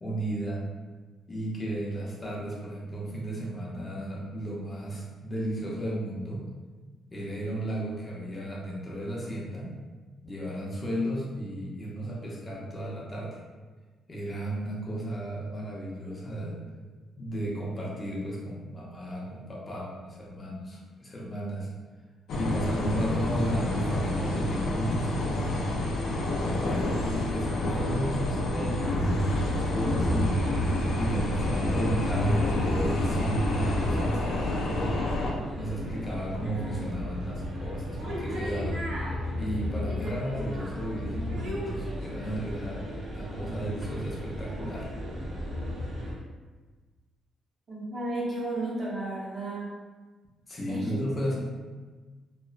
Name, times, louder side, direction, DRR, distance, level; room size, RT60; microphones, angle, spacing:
voice 1, 0.0-0.6 1.3-6.4 7.1-9.7 10.2-13.4 14.1-16.6 17.2-21.7 22.4-25.5 26.2-30.4 31.0-35.0 35.5-38.8 39.4-42.9 43.1-44.9 50.5-51.4, equal, 25° left, -5 dB, 0.6 m, -34 dB
sound 1, 22.3-35.3, left 1 dB, 75° left, 0.4 m, -28 dB
sound 2, 28.8-46.1, equal, 85° right, 0.7 m, -35 dB
voice 2, 47.7-49.7 50.7-51.0 51.3-51.4, right 2 dB, 40° right, -6 dB, 0.8 m, -33 dB
2.9 x 2.0 x 2.3 m, 1.3 s
cardioid pair, 100°, 0 cm